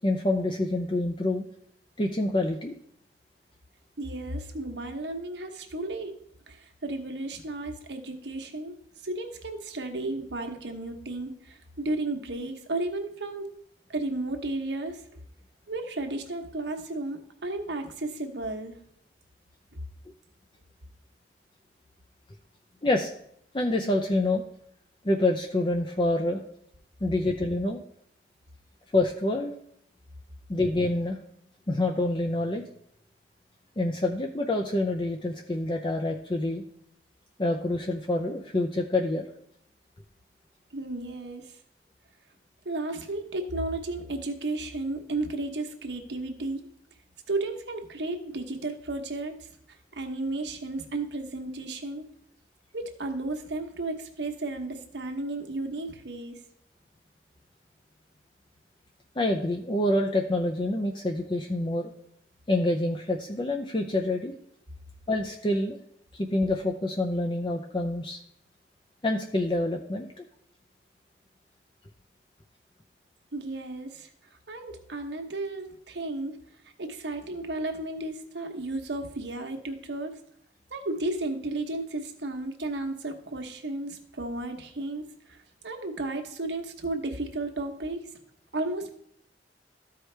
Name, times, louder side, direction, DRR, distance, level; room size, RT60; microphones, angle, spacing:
voice 1, 0.0-1.4 2.0-2.7 22.8-23.1 23.5-24.4 25.0-26.4 27.0-27.8 28.9-29.6 30.5-31.2 31.7-32.6 33.8-36.6 37.4-39.2 59.2-61.9 62.5-64.3 65.1-65.8 66.1-68.2 69.0-70.2, left 2 dB, 30° left, 2 dB, 0.5 m, -27 dB
voice 2, 4.0-6.2 6.5-8.7 9.0-13.5 13.9-15.0 15.7-18.8 40.7-41.5 42.6-46.7 47.3-49.5 49.9-52.0 52.7-56.4 73.3-74.1 74.5-76.4 76.8-80.2 80.7-88.1 88.5-88.9, right 2 dB, 85° right, 4 dB, 1.1 m, -33 dB
13.5 x 4.8 x 3.3 m, 0.70 s
head